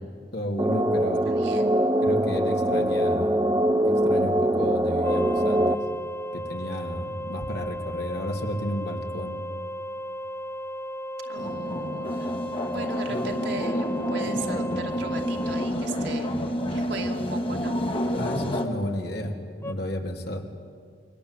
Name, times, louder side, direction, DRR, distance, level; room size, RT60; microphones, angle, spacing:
voice 1, 0.3-1.3 2.0-3.4 3.8-5.8 6.3-9.3 13.1-13.2 18.1-19.3 19.6-20.4, equal, 60° left, 2 dB, 3.0 m, -32 dB
sound 1, 0.6-5.7, right 1 dB, 20° right, 0.8 m, -23 dB
voice 2, 1.3-1.8 11.2-12.4 12.7-16.3 16.7-17.8, right 3 dB, 65° right, 2 dB, 2.6 m, -37 dB
sound 2, 5.0-15.7 19.6-19.7, equal, 15° left, 0.7 m, -35 dB
sound 3, 11.4-18.7, equal, 30° left, 2.1 m, -29 dB
27.0 x 23.0 x 8.3 m, 2.2 s
head